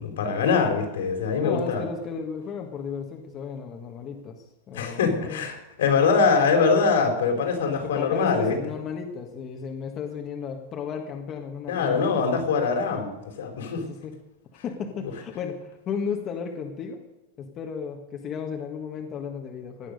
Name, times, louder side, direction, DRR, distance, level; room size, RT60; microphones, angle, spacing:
voice 1, 0.0-1.8 4.7-8.6 11.7-13.8, left 5 dB, 85° left, 4 dB, 4.5 m, -23 dB
voice 2, 1.4-5.4 7.7-12.3 12.9-13.0 13.8-14.2 14.5-17.0 17.4-19.9, left 6 dB, 25° left, 3 dB, 1.6 m, -34 dB
17.0 x 10.5 x 6.6 m, 1.0 s
supercardioid pair, 170°, 0 cm